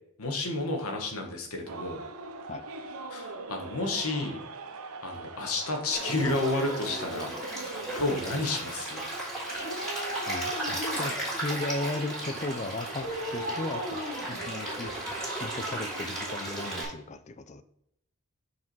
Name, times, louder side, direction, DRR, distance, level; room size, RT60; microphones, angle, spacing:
voice 1, 0.2-2.0 3.1-4.4 5.0-7.3 7.9-9.0, left 2 dB, 80° left, 3 dB, 1.5 m, -31 dB
sound 1, 1.7-16.9, right 3 dB, 80° right, 0.7 m, -42 dB
Dog, 5.8-7.9 9.6-11.3 13.0-15.1 15.5-15.6, equal, 55° left, 2.1 m, -39 dB
Stream, 5.9-16.8, right 1 dB, 5° left, 2.6 m, -36 dB
voice 2, 10.3-14.0 14.3-15.0 15.4-17.6, left 2 dB, 30° left, 12 dB, 0.4 m, -36 dB
5.9 x 4.8 x 4.6 m, 0.76 s
head